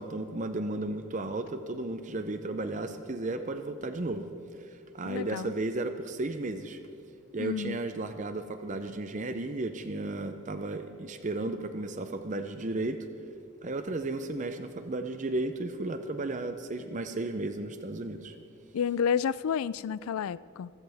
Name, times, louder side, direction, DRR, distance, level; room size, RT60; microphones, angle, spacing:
voice 1, 0.0-4.3 4.6-6.8 7.3-13.1 13.6-18.4, right 2 dB, 35° right, 8 dB, 0.6 m, -34 dB
voice 2, 5.0-5.5 7.4-7.8 18.7-20.7, left 7 dB, 75° left, 19 dB, 0.3 m, -30 dB
25.0 x 15.5 x 3.5 m, 2.5 s
head